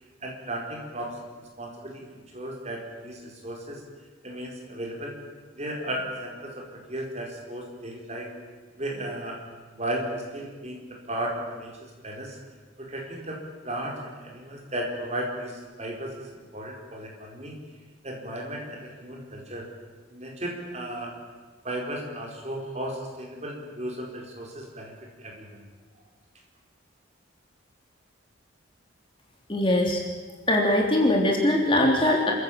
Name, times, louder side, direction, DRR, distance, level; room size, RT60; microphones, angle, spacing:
voice 1, 0.2-1.2 1.6-3.8 4.2-5.2 5.5-8.3 8.8-9.4 9.7-12.4 12.8-13.4 13.6-17.6 18.0-19.7 20.1-21.1 21.6-25.6, right 1 dB, 35° right, 0 dB, 4.7 m, -35 dB
voice 2, 29.5-30.0 30.5-32.3, left 1 dB, 25° left, 0 dB, 3.2 m, -21 dB
28.0 x 14.5 x 8.7 m, 1.4 s
head